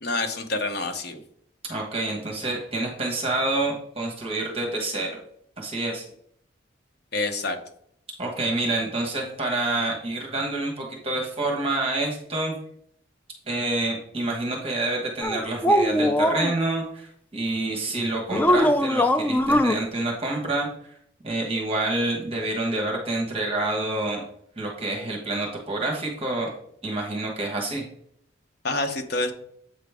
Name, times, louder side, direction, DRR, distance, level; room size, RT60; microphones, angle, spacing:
voice 1, 0.0-1.2 7.1-7.6 28.6-29.3, left 2 dB, 55° left, 5 dB, 0.9 m, -27 dB
voice 2, 1.7-5.1 5.6-6.0 8.2-12.5 13.5-20.7 21.2-24.2 24.6-26.5 26.8-27.8, right 2 dB, 30° right, 0 dB, 1.2 m, -27 dB
sound 1, 15.2-16.5 18.3-19.8, equal, 10° left, 0.3 m, -21 dB
8.0 x 5.1 x 3.5 m, 0.68 s
head